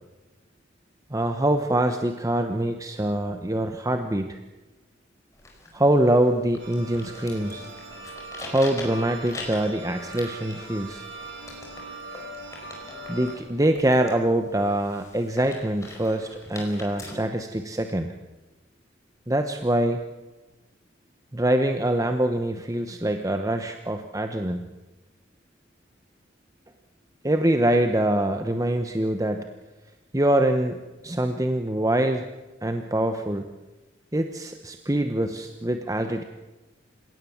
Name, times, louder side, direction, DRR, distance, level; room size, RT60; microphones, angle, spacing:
voice 1, 1.1-4.4 5.7-7.7 8.4-11.0 13.1-18.1 19.3-20.0 21.3-24.7 27.2-29.5 30.1-32.3 32.6-33.5 34.1-36.2, right 1 dB, 20° right, 6 dB, 1.0 m, -24 dB
sound 1, 5.3-17.1, left 2 dB, 15° left, 4.9 m, -43 dB
sound 2, 6.6-13.4, right 2 dB, 90° right, 7.9 m, -41 dB
29.0 x 17.0 x 7.2 m, 1.1 s
head